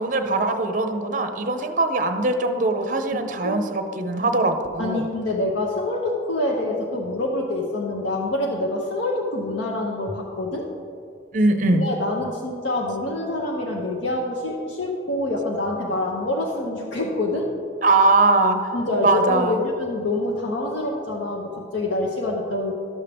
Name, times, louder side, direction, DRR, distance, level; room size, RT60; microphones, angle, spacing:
voice 1, 0.0-5.1 11.3-11.9 17.8-18.7 19.0-19.6, right 2 dB, 40° right, 7 dB, 0.6 m, -21 dB
voice 2, 3.1-3.6 4.8-10.7 11.8-17.5 18.7-22.7, left 2 dB, 70° left, -2 dB, 0.8 m, -26 dB
12.0 x 7.2 x 3.4 m, 2.5 s
head